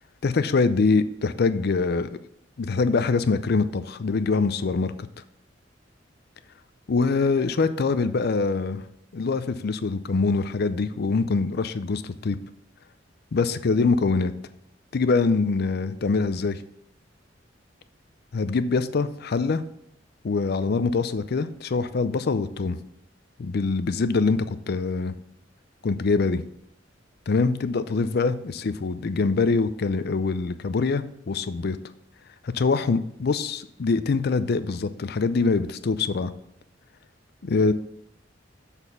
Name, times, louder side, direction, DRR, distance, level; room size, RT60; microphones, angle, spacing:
voice 1, 0.2-2.1 2.6-4.9 6.9-8.8 9.1-12.4 13.3-14.3 14.9-16.6 18.3-19.6 20.2-22.8 23.4-25.1 25.8-26.4 27.3-31.8 32.5-36.3 37.4-37.7, left 4 dB, 55° left, 13 dB, 0.5 m, -24 dB
7.1 x 4.2 x 5.6 m, 0.75 s
head